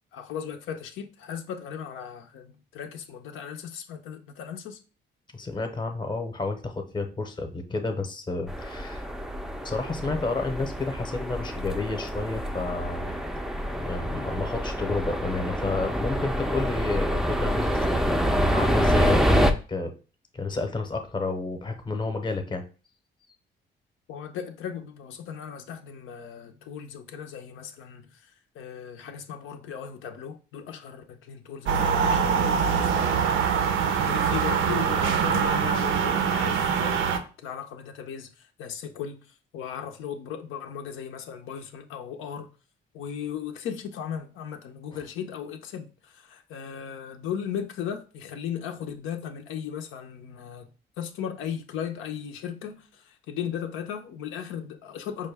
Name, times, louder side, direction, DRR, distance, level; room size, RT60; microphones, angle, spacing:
voice 1, 0.1-4.8 24.1-33.3 34.0-42.5 42.9-50.7 51.0-55.3, left 8 dB, 85° left, 0.5 m, -37 dB
voice 2, 5.3-9.1 9.6-13.2 13.7-19.9 20.3-22.7, left 3 dB, 25° left, 0.7 m, -31 dB
sound 1, 8.5-19.5, equal, ahead, 0.4 m, -27 dB
sound 2, 31.7-37.2, right 6 dB, 75° right, 0.5 m, -24 dB
5.1 x 2.2 x 3.3 m
cardioid pair, 90°, 20 cm